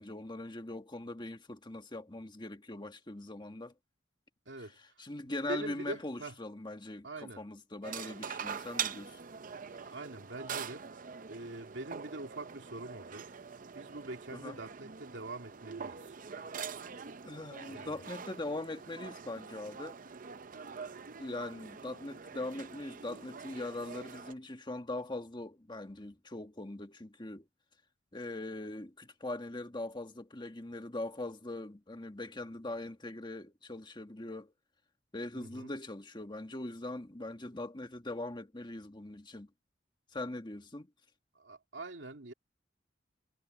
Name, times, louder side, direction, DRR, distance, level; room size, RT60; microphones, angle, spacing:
voice 1, 0.0-3.7 5.0-9.2 14.3-14.6 17.2-20.0 21.2-27.4 28.1-34.5 35.1-39.5 40.1-40.9, left 2 dB, 25° left, 1.6 m, -41 dB
voice 2, 4.5-4.8 5.5-6.3 7.0-7.5 9.9-10.9 11.3-13.3 13.7-16.2 17.7-18.0 35.3-35.7 41.3-42.3, right 2 dB, 85° right, 2.5 m, -44 dB
sound 1, 7.8-24.3, right 6 dB, 45° right, 0.7 m, -44 dB
head